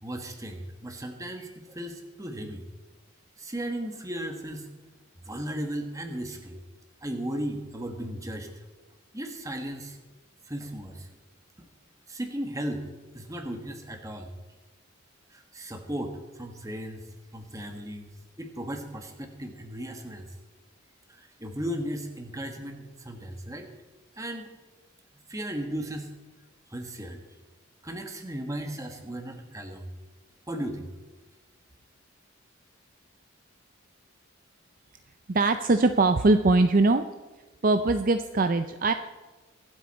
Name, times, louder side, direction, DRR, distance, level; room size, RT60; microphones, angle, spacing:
voice 1, 0.0-2.6 3.4-4.7 5.2-6.6 7.0-8.5 9.1-10.0 10.5-11.1 11.6-11.7 12.1-12.9 13.1-14.3 15.3-17.0 17.3-18.1 18.4-20.3 21.1-23.7 24.2-24.5 25.3-26.1 26.7-27.2 27.8-29.9 30.5-30.9, right 1 dB, 15° right, 5 dB, 1.5 m, -36 dB
voice 2, 35.3-37.1 37.6-38.9, right 2 dB, 45° right, 9 dB, 0.5 m, -21 dB
24.5 x 8.2 x 4.3 m, 1.2 s
head